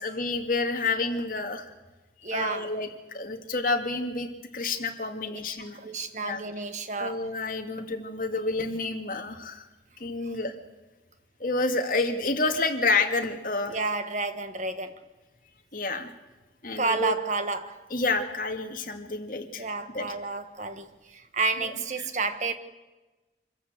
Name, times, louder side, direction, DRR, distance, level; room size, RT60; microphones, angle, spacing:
voice 1, 0.0-1.7 2.2-5.8 6.2-6.4 7.0-9.6 10.0-10.5 11.4-13.8 15.7-16.1 16.6-17.1 17.9-19.7 19.9-20.1 21.6-21.7 22.0-22.1, left 3 dB, 50° left, 2.1 m, -29 dB
voice 2, 2.2-2.7 5.3-5.4 5.7-7.2 13.7-14.9 16.8-17.8 19.6-22.5, right 3 dB, 40° right, 1.5 m, -30 dB
25.5 x 14.5 x 8.0 m
head